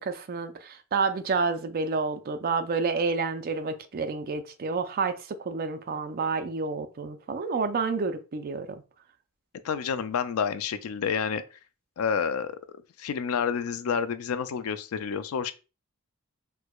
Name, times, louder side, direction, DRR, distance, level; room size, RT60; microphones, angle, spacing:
voice 1, 0.0-8.8, right 4 dB, 45° right, 0.4 m, -29 dB
voice 2, 9.6-11.4 12.0-12.6 13.0-15.5, left 6 dB, 80° left, 0.4 m, -29 dB
4.5 x 2.2 x 2.2 m
head